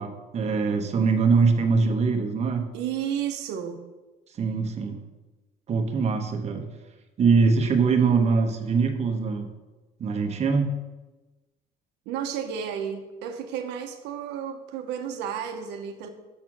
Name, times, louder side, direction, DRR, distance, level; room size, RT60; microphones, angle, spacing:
voice 1, 0.0-2.7 4.4-5.0 5.7-6.7 7.2-9.5 10.0-10.7, right 5 dB, 40° right, 4 dB, 1.0 m, -23 dB
voice 2, 2.7-3.8 12.1-16.1, right 8 dB, 90° right, 5 dB, 0.7 m, -32 dB
7.4 x 4.4 x 5.9 m, 1.1 s
cardioid pair, 110°, 17 cm